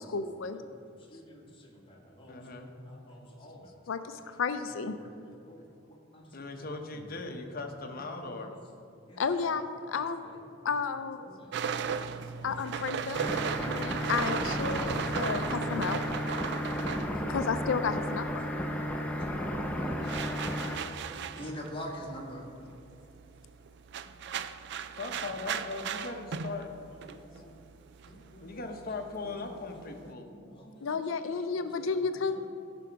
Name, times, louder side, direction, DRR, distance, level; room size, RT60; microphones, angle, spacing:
voice 1, 0.0-0.6 3.9-5.0 9.2-10.3 10.6-11.2 12.4-13.2 13.6-14.9 15.2-16.0 17.3-18.4 30.8-32.4, left 5 dB, 70° left, 10 dB, 0.5 m, -32 dB
voice 2, 0.5-2.5 2.8-3.7 4.0-4.3 4.6-7.4 7.9-8.0 8.4-8.5 9.0-10.8 11.2-13.6 19.1-19.2 20.2-22.7 24.9-25.0 26.3-27.6 28.0-28.6 29.0-31.2 31.5-32.5, equal, 25° left, -1 dB, 1.6 m, -49 dB
voice 3, 2.3-2.7 6.3-8.6 11.7-12.1 19.8-20.2 24.1-24.2 25.0-26.8 28.1-30.3, left 3 dB, 50° left, 4 dB, 1.0 m, -40 dB
sound 1, 11.5-18.2 18.5-30.1, right 7 dB, 60° right, 0.4 m, -37 dB
sound 2, 13.1-20.8, equal, 5° left, 0.7 m, -33 dB
14.5 x 6.1 x 4.6 m, 2.5 s
head